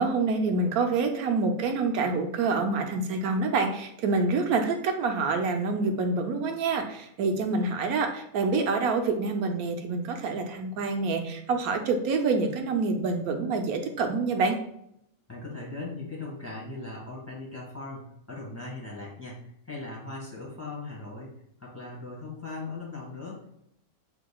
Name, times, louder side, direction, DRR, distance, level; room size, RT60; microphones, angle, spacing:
voice 1, 0.0-14.6, right 4 dB, 90° right, 5 dB, 1.1 m, -27 dB
voice 2, 15.3-21.3 21.6-23.5, left 3 dB, 10° left, -5 dB, 1.6 m, -39 dB
7.9 x 2.9 x 2.3 m, 0.75 s
omnidirectional pair, 1.5 m